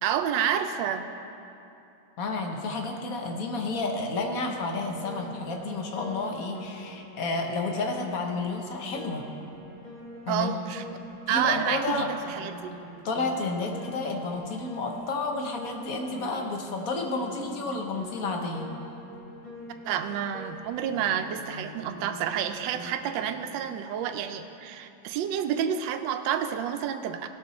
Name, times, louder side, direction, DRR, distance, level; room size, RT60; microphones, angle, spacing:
voice 1, 0.0-1.1 10.3-10.8 11.3-12.8 19.8-27.3, right 9 dB, 80° right, 7 dB, 1.3 m, -29 dB
voice 2, 2.2-9.2 10.3-10.5 11.3-12.1 13.0-18.7, left 3 dB, 50° left, 2 dB, 1.3 m, -31 dB
Piano, 4.1-23.3, equal, 70° left, 2.8 m, -44 dB
17.5 x 6.1 x 4.1 m, 2.7 s
omnidirectional pair, 2.1 m